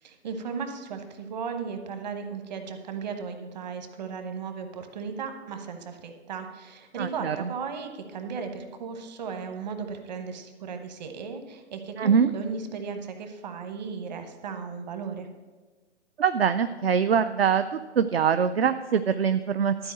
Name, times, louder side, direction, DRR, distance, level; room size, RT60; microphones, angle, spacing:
voice 1, 0.0-15.3, right 5 dB, 40° right, 7 dB, 1.2 m, -36 dB
voice 2, 7.0-7.5 12.0-12.3 16.2-19.9, right 7 dB, 60° right, 12 dB, 0.5 m, -23 dB
12.5 x 4.8 x 7.7 m, 1.3 s
figure-of-eight pair, 130°, 35 cm